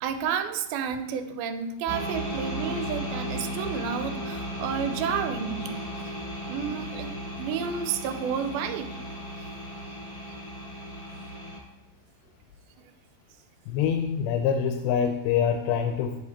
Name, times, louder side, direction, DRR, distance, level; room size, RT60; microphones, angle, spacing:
voice 1, 0.0-5.7 6.5-8.9, right 7 dB, 90° right, 9 dB, 2.5 m, -31 dB
sound 1, 1.9-11.6, equal, 10° left, 1.2 m, -35 dB
voice 2, 13.7-16.2, left 8 dB, 85° left, 5 dB, 2.5 m, -25 dB
8.4 x 7.7 x 4.3 m, 0.93 s
omnidirectional pair, 4.3 m